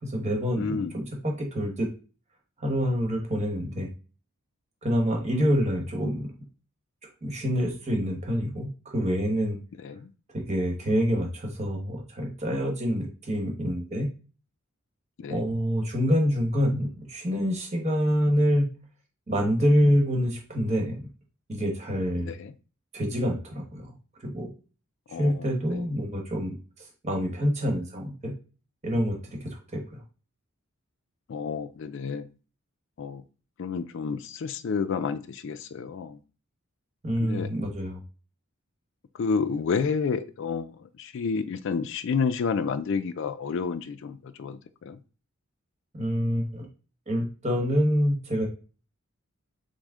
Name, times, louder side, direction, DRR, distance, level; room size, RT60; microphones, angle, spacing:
voice 1, 0.0-1.9 2.6-3.9 4.8-6.3 7.2-9.6 10.3-14.1 15.3-18.7 19.3-21.1 21.5-22.3 22.9-23.9 24.2-24.5 25.2-26.5 27.0-28.3 28.8-30.0 37.0-38.0 45.9-46.7 47.1-48.5, equal, 30° right, 1.2 m, -26 dB
voice 2, 0.6-0.9 9.8-10.1 15.2-15.5 22.2-22.5 25.1-25.4 25.7-25.8 31.3-32.3 33.0-33.2 33.6-36.2 37.2-37.5 39.2-40.7 41.0-45.0, left 5 dB, 60° left, 0.3 m, -30 dB
6.1 x 2.1 x 3.6 m
head